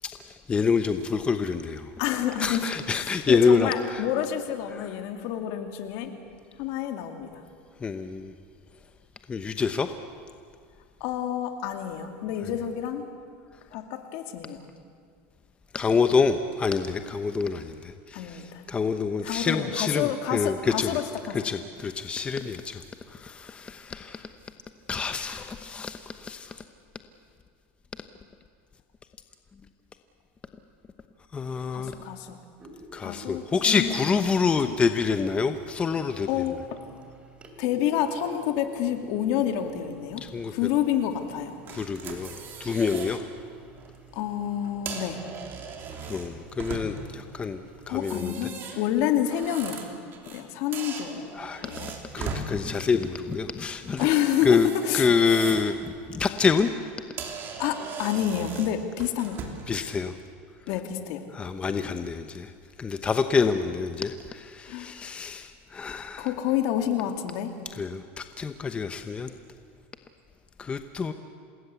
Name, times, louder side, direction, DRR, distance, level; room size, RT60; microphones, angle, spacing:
voice 1, 0.0-1.9 2.4-4.0 7.8-8.3 9.3-9.9 15.7-21.0 21.4-24.3 24.9-26.6 31.3-31.9 32.9-36.3 40.2-40.5 41.7-42.3 42.6-43.2 46.1-48.4 51.4-51.7 52.1-54.1 54.4-54.7 54.9-56.7 59.7-60.1 61.3-62.5 62.8-66.3 67.8-69.3 70.6-71.1, left 5 dB, 20° left, 8 dB, 0.9 m, -27 dB
voice 2, 2.0-2.7 3.0-6.1 6.6-7.4 11.0-13.0 13.7-14.6 18.1-18.6 19.2-21.4 31.7-32.4 33.0-34.8 36.3-36.8 37.6-40.2 40.5-41.5 44.1-45.2 47.9-49.8 50.3-51.3 51.6-51.9 54.0-55.1 57.6-59.4 60.7-61.2 64.7-64.9 66.2-67.5, left 10 dB, 60° left, 6 dB, 2.5 m, -28 dB
sound 1, 32.6-48.0, right 2 dB, 20° right, 2.9 m, -50 dB
sound 2, 41.7-43.2 43.6-43.9 44.6-47.2 47.9-50.4 50.7-52.5 54.0-55.8 56.2-56.4 56.9-57.0 57.2-59.7, right 6 dB, 35° right, 3.4 m, -39 dB
27.5 x 19.5 x 8.3 m, 2.2 s
supercardioid pair, 135°, 6 cm